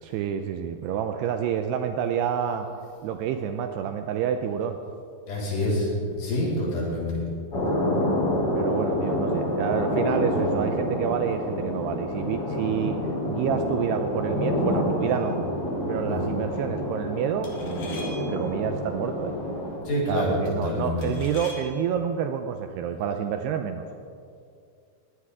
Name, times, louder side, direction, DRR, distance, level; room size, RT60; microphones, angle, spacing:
voice 1, 0.0-2.7 3.0-4.8 8.5-13.0 13.3-15.4 15.9-19.3 20.1-23.8, right 8 dB, 80° right, 6 dB, 2.6 m, -28 dB
voice 2, 5.3-7.2 16.1-16.4 19.9-21.1, left 1 dB, 65° left, -6 dB, 6.5 m, -27 dB
sound 1, 7.5-19.8, left 1 dB, 25° left, 3.7 m, -28 dB
sound 2, 15.1-15.4 17.4-18.5 21.0-21.9, left 2 dB, 50° left, 2.7 m, -43 dB
21.5 x 17.5 x 3.7 m, 2.4 s
omnidirectional pair, 5.1 m